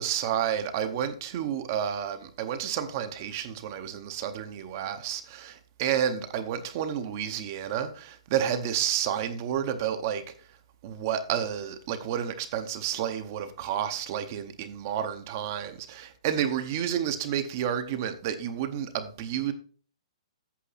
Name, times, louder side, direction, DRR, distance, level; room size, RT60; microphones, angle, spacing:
voice 1, 0.0-10.2 10.8-19.5, right 9 dB, 25° right, 0.7 m, -30 dB
8.4 x 6.8 x 4.1 m
hypercardioid pair, 175°, 3 cm